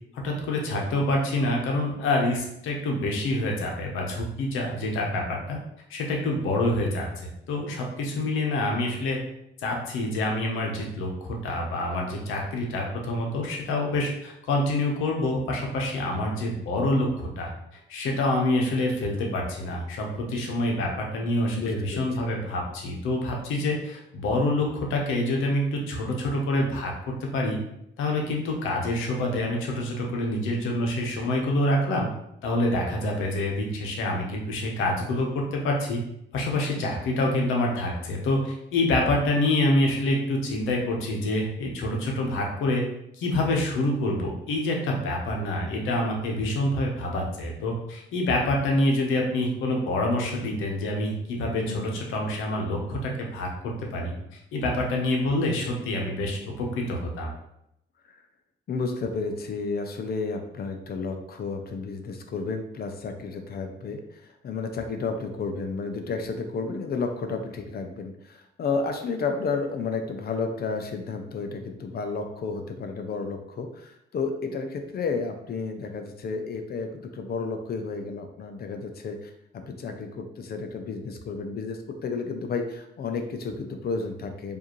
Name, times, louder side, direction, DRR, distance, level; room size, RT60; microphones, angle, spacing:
voice 1, 0.1-5.6 5.9-9.2 9.6-17.5 17.9-27.6 28.0-32.1 32.4-36.0 36.3-42.8 43.2-53.5 53.9-54.1 54.5-57.3, left 1 dB, 90° left, 0 dB, 0.9 m, -26 dB
voice 2, 21.5-22.1 51.7-51.9 58.1-58.2 58.7-84.6, left 4 dB, 50° left, 6 dB, 0.6 m, -32 dB
4.7 x 2.7 x 3.1 m, 0.80 s
cardioid pair, 90°, 20 cm